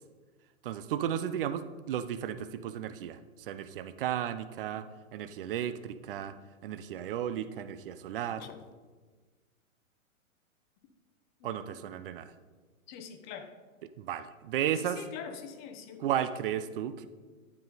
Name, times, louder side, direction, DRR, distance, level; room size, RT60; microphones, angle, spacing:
voice 1, 0.6-6.4 6.6-8.5 11.4-12.3 14.0-15.0 16.0-17.1, right 10 dB, 40° right, 13 dB, 0.4 m, -34 dB
sound 1, 8.4-9.3, left 8 dB, 75° left, 0.7 m, -50 dB
voice 2, 11.4-11.8 12.9-13.5 14.8-16.1, left 7 dB, 35° left, 7 dB, 0.9 m, -43 dB
10.5 x 5.3 x 3.9 m, 1.4 s
hypercardioid pair, 130°, 42 cm